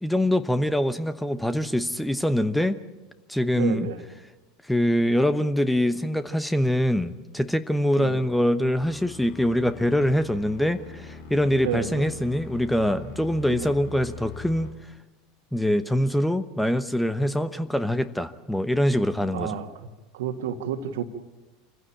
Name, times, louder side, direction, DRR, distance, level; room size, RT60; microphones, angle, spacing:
voice 1, 0.0-2.8 3.3-3.9 4.7-14.7 15.5-19.6, equal, 5° left, 12 dB, 1.0 m, -24 dB
voice 2, 3.6-4.0 8.0-8.2 11.6-12.1 13.5-13.7 19.3-19.7 20.1-21.0, right 8 dB, 65° right, 7 dB, 2.0 m, -30 dB
sound 1, 8.8-14.7, left 4 dB, 60° left, 3.4 m, -42 dB
26.0 x 15.5 x 9.0 m, 1.1 s
figure-of-eight pair, 75°, 0 cm